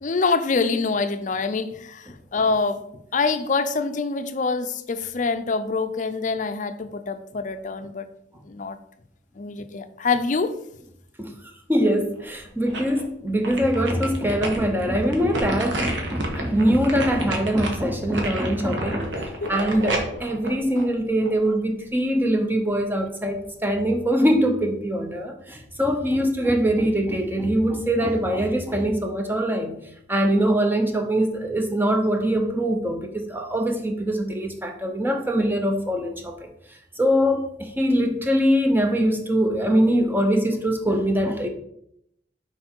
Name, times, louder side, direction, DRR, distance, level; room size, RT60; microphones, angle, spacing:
voice 1, 0.0-2.8 3.1-8.1 8.5-8.8 9.4-10.6 19.4-19.5, left 4 dB, 45° left, 0.5 m, -25 dB
voice 2, 11.7-29.8 30.1-36.5 37.0-41.5, equal, 10° right, 0.8 m, -23 dB
sound 1, 12.2-13.0 13.4-21.5 21.9-22.0, right 2 dB, 80° right, 1.4 m, -31 dB
6.1 x 4.7 x 4.4 m
head